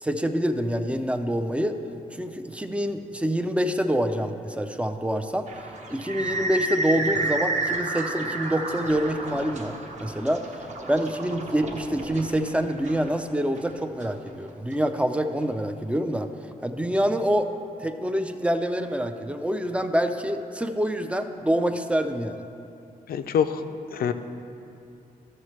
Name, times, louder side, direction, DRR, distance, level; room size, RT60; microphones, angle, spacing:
voice 1, 0.0-1.7 2.1-5.5 5.9-10.4 10.9-16.3 16.6-17.5 17.8-22.4, equal, 10° right, 7 dB, 0.4 m, -26 dB
sound 1, 5.5-14.8, right 2 dB, 50° right, 1.0 m, -31 dB
voice 2, 23.1-23.6 23.9-24.1, left 8 dB, 80° left, 10 dB, 0.4 m, -24 dB
13.0 x 6.5 x 3.2 m, 2.6 s
wide cardioid pair, 130°, 15 cm